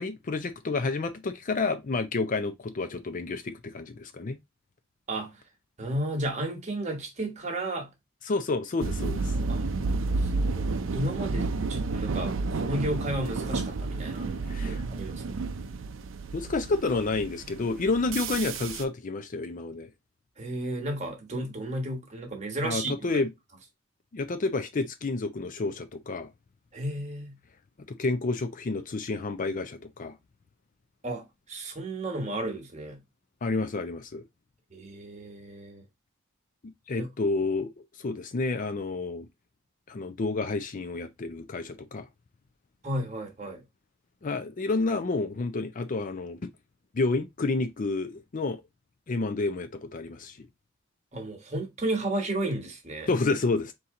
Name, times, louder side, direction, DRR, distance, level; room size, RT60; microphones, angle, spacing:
voice 1, 0.0-4.4 8.3-9.3 14.5-14.8 16.3-19.9 22.6-23.3 24.1-26.3 27.9-30.2 33.4-34.2 36.9-39.3 39.9-42.1 44.2-46.4 46.9-48.6 49.1-50.4 53.1-53.7, left 3 dB, 40° left, 0.5 m, -30 dB
voice 2, 5.1-5.4 5.8-7.9 9.5-9.7 10.2-15.2 20.4-22.9 26.7-27.4 31.0-33.0 34.7-35.8 37.0-37.1 42.8-43.6 51.1-53.1, right 1 dB, 35° right, 1.3 m, -33 dB
sound 1, 8.8-18.8, right 3 dB, 65° right, 0.5 m, -31 dB
4.2 x 2.8 x 3.6 m
head